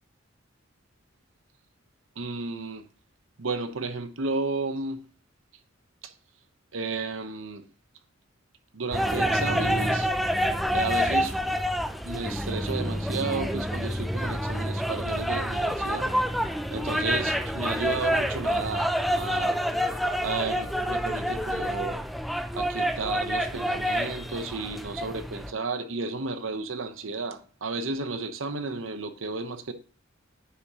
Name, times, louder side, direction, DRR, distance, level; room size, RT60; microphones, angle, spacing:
voice 1, 2.2-2.9 3.4-5.0 6.0-6.1 6.7-7.7 8.7-10.1 10.7-11.4 12.0-16.2 16.7-19.6 20.2-22.0 22.5-29.7, right 3 dB, 85° right, 0.9 m, -33 dB
sound 1, 8.9-25.5, equal, ahead, 0.3 m, -28 dB
9.8 x 5.9 x 2.9 m
head